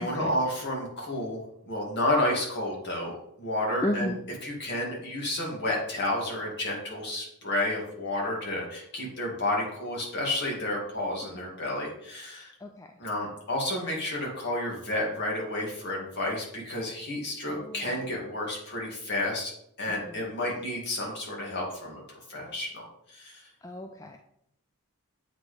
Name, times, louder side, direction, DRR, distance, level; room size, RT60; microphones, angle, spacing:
voice 1, 0.0-1.4 1.7-4.1 4.4-12.5 13.0-19.5 19.8-22.0 22.3-22.8 23.1-23.4, left 1 dB, 55° left, -2 dB, 2.1 m, -31 dB
voice 2, 3.8-4.2 11.3-11.4 12.6-12.9 17.5-17.8 20.0-20.2 23.6-24.2, left 1 dB, 15° left, 3 dB, 0.3 m, -33 dB
8.0 x 4.2 x 3.3 m, 0.73 s
head